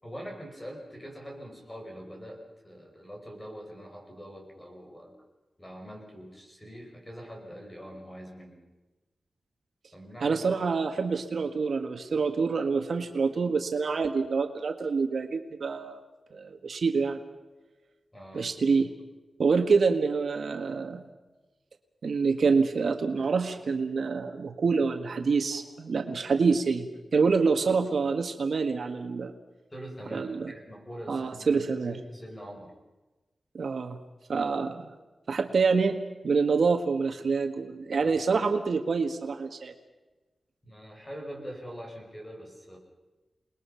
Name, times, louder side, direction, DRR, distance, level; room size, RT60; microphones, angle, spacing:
voice 1, 0.0-5.1 5.6-8.6 9.9-10.4 18.1-18.5 25.5-25.6 29.7-32.7 38.0-38.1 40.6-42.8, equal, 15° left, 1 dB, 6.0 m, -43 dB
voice 2, 10.2-16.0 16.3-17.2 18.3-18.9 19.4-21.0 22.0-26.9 27.1-29.3 30.1-30.5 31.1-32.0 33.5-34.0 34.3-34.9 35.3-39.7, right 4 dB, 65° right, 6 dB, 1.6 m, -26 dB
28.5 x 20.5 x 5.8 m, 1.1 s
wide cardioid pair, 135°, 0 cm